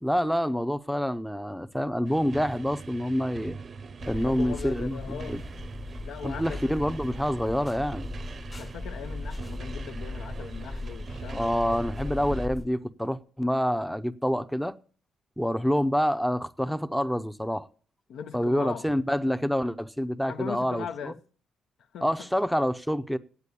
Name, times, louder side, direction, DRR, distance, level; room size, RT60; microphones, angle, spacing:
voice 1, 0.0-3.6 4.1-5.4 6.2-8.1 11.3-14.8 15.4-17.7 18.3-21.1 22.0-23.2, equal, ahead, 0.6 m, -27 dB
sound 1, 2.0-12.5, right 4 dB, 45° right, 0.7 m, -42 dB
voice 2, 4.0-5.4 6.0-6.7 8.6-11.9 18.1-18.9 20.3-21.2 21.9-22.3, left 7 dB, 75° left, 0.8 m, -39 dB
sound 2, 4.0-12.7, left 2 dB, 25° left, 0.9 m, -38 dB
8.4 x 8.3 x 8.4 m
cardioid pair, 90°, 0 cm